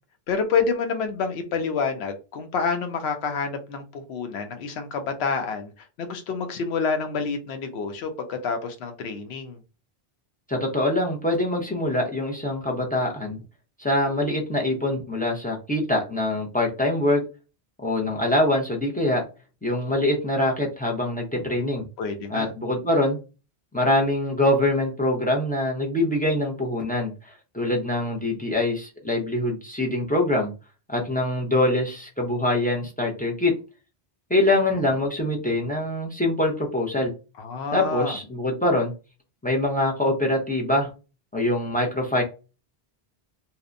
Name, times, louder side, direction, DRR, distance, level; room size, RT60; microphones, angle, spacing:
voice 1, 0.3-9.6 22.0-22.5 37.4-38.2, left 5 dB, 85° left, 0.8 m, -28 dB
voice 2, 10.5-13.4 13.8-17.2 17.8-19.2 19.6-21.8 22.3-23.2 23.7-30.5 30.9-33.5 34.3-37.1 37.7-38.9 39.4-40.9 41.3-42.2, left 1 dB, 15° left, 0.3 m, -24 dB
2.8 x 2.1 x 2.4 m
omnidirectional pair, 1.1 m